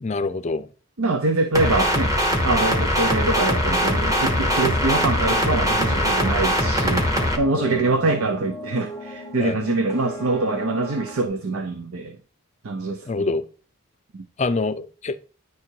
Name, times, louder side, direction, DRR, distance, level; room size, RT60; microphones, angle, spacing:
voice 1, 0.0-0.7 7.6-8.0 9.4-9.6 13.1-13.4 14.4-15.2, left 3 dB, 30° left, 0.4 m, -25 dB
voice 2, 1.0-2.1 2.4-7.1 7.4-12.2 12.6-13.3 14.1-14.3, right 3 dB, 85° right, 0.7 m, -24 dB
sound 1, 1.5-7.4, equal, 15° right, 1.0 m, -21 dB
sound 2, 2.9-11.3, equal, 30° right, 2.0 m, -36 dB
9.4 x 3.8 x 4.6 m
head